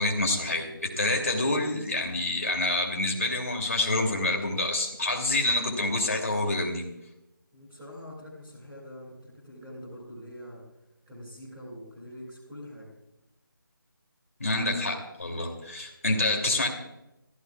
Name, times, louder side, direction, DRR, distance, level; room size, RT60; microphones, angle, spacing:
voice 1, 0.0-6.8 14.4-16.7, left 2 dB, 40° left, 1 dB, 2.8 m, -27 dB
voice 2, 7.5-10.6 11.1-12.9, equal, 5° right, -10 dB, 2.2 m, -44 dB
26.5 x 15.0 x 2.4 m, 0.90 s
figure-of-eight pair, 180°, 12 cm